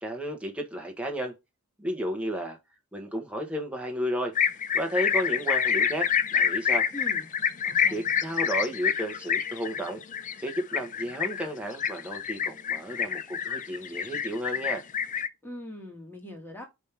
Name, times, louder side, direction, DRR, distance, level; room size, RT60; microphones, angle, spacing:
voice 1, 0.0-1.3 1.8-2.6 2.9-4.4 4.7-6.9 7.9-10.0 10.4-14.8, equal, 5° right, 1.3 m, -33 dB
sound 1, 4.4-15.3, left 7 dB, 35° left, 0.5 m, -27 dB
voice 2, 6.9-7.3 7.7-8.0 15.4-16.7, left 1 dB, 10° left, 1.7 m, -41 dB
5.2 x 3.6 x 5.8 m
head